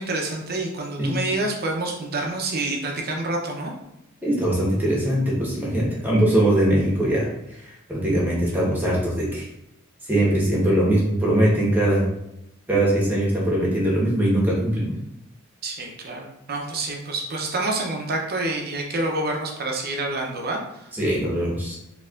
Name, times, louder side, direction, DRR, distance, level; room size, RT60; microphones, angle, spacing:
voice 1, 0.0-3.7 15.6-20.9, right 2 dB, 45° right, 1 dB, 0.7 m, -28 dB
voice 2, 4.2-7.3 7.6-9.5 10.1-12.0 12.7-14.9 20.9-21.7, right 1 dB, 10° right, -5 dB, 1.1 m, -21 dB
4.3 x 3.0 x 2.4 m, 0.84 s
head